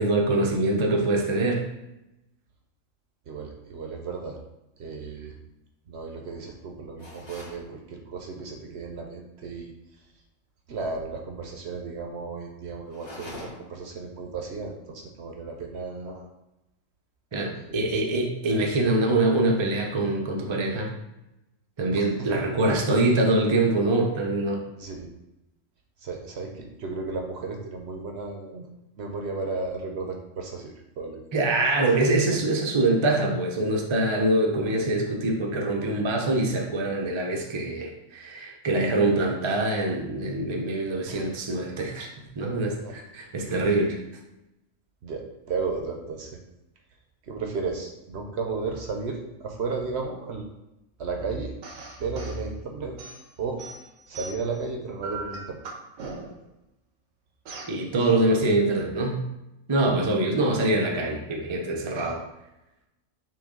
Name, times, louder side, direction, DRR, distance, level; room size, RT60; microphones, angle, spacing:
voice 1, 0.0-1.6 17.3-20.9 21.8-24.6 31.3-44.0 57.7-59.2 59.7-62.2, right 2 dB, 35° right, 0 dB, 0.4 m, -24 dB
voice 2, 3.3-4.4 4.8-5.3 5.9-9.7 10.7-16.3 17.6-17.9 21.9-22.4 24.8-25.1 26.0-28.7 29.0-31.2 32.3-32.4 41.0-41.3 42.7-43.0 43.6-43.7 45.0-46.4 47.2-50.5 51.0-51.5 52.0-53.0 53.4-53.6 54.1-55.6 61.9-62.1, right 4 dB, 60° right, 2 dB, 0.8 m, -34 dB
sound 1, 7.0-7.6 12.9-13.8, left 1 dB, 25° left, 0.8 m, -43 dB
sound 2, 51.6-52.4 53.0-54.6 55.0-56.5 57.5-57.8, right 3 dB, 80° right, 1.1 m, -39 dB
5.7 x 2.3 x 3.7 m, 0.93 s
omnidirectional pair, 1.4 m